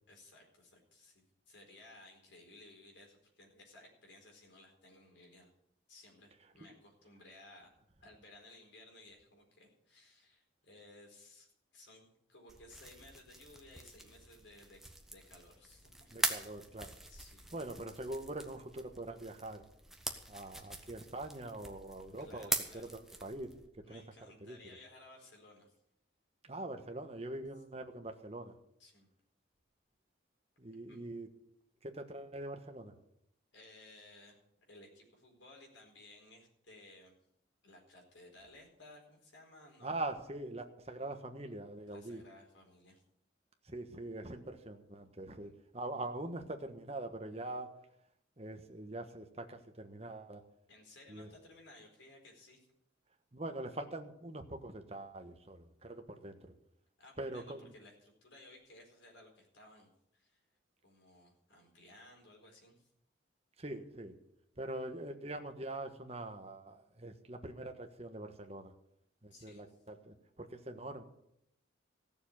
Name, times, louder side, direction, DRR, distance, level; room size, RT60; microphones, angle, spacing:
voice 1, 0.1-5.5 5.9-7.7 8.0-14.8 15.1-16.6 17.1-17.4 22.2-22.9 23.8-25.7 28.8-29.1 30.9-31.1 33.5-34.4 34.7-37.1 37.6-39.9 41.9-43.0 45.4-45.5 45.9-46.0 50.7-52.7 57.0-60.4 60.8-62.9 69.3-69.8, left 2 dB, 70° left, 1 dB, 4.4 m, -58 dB
sound 1, 12.5-23.7, right 2 dB, ahead, 1.1 m, -43 dB
voice 2, 16.1-16.9 17.5-19.6 20.3-24.0 24.4-24.6 26.4-28.5 30.6-31.3 31.8-32.9 39.8-42.2 43.6-47.7 48.4-50.4 51.1-51.3 53.3-56.5 57.2-57.7 63.6-64.1 64.6-68.7 69.2-71.0, right 2 dB, 30° right, 5 dB, 1.3 m, -43 dB
16.0 x 7.1 x 8.6 m, 0.77 s
head